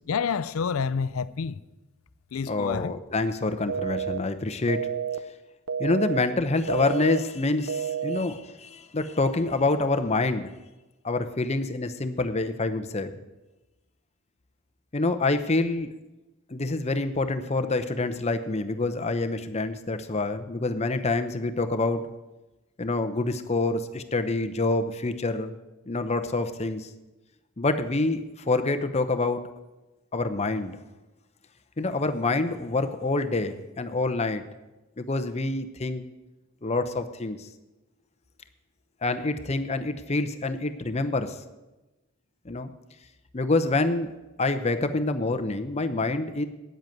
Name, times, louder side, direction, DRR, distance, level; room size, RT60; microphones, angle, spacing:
voice 1, 0.1-1.5 2.3-2.9, left 6 dB, 85° left, 0.5 m, -28 dB
voice 2, 2.5-4.8 5.8-10.5 11.0-13.2 14.9-15.9 16.5-22.0 22.8-25.5 25.9-26.9 27.6-29.4 30.1-30.8 31.8-34.4 35.0-36.0 36.6-37.5 39.0-41.4 42.4-42.7 43.3-44.1 44.4-46.4, left 2 dB, 30° left, 0.8 m, -27 dB
sound 1, 3.7-4.2 4.7-5.2 5.7-6.2 6.7-7.2 7.7-8.2, right 8 dB, 75° right, 0.7 m, -29 dB
8.9 x 8.0 x 9.2 m
head